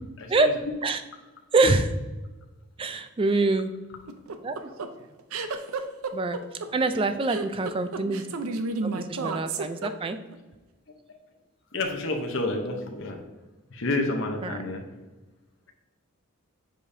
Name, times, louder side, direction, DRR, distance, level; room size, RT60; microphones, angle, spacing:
voice 1, 0.2-0.5 11.7-13.2 13.7-14.8, left 2 dB, 60° left, 3 dB, 0.8 m, -29 dB
voice 2, 1.5-1.9 2.8-3.7 4.4-4.7 6.1-6.4 6.7-8.2 8.8-10.2 14.4-14.5, right 3 dB, 25° right, 10 dB, 0.3 m, -25 dB
sound 1, 4.1-10.4, right 4 dB, 80° right, 0.5 m, -32 dB
7.3 x 5.0 x 2.7 m, 1.2 s
head